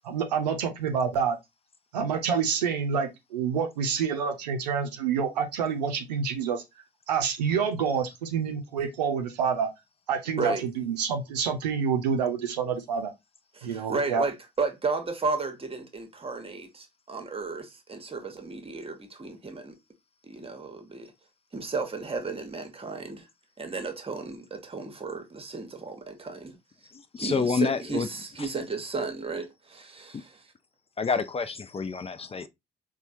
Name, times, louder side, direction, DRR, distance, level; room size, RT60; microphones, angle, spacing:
voice 1, 0.0-1.4 1.9-6.6 7.1-9.7 10.1-13.1 13.6-14.3, right 6 dB, 90° right, 0.5 m, -27 dB
voice 2, 13.5-19.7 20.2-21.1 21.5-23.3 23.6-26.6 27.2-30.5, right 4 dB, 25° right, 1.0 m, -33 dB
voice 3, 27.1-28.1 31.0-32.5, left 4 dB, 30° left, 0.5 m, -28 dB
4.3 x 2.2 x 2.6 m
hypercardioid pair, 45°, 21 cm